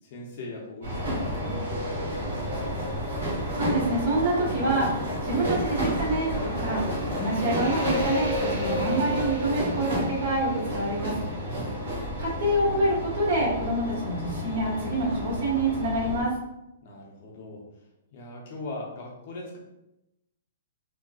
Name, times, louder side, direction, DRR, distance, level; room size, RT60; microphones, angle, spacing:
voice 1, 0.0-2.7 11.4-11.7 16.8-17.9 18.1-19.6, left 2 dB, 45° left, -2 dB, 0.6 m, -40 dB
sound 1, 0.8-16.2, equal, 75° right, 1.4 m, -30 dB
voice 2, 3.5-11.1 12.2-16.3, right 1 dB, 55° right, -4 dB, 1.4 m, -27 dB
3.7 x 2.2 x 2.3 m, 0.88 s
hypercardioid pair, 160°, 0 cm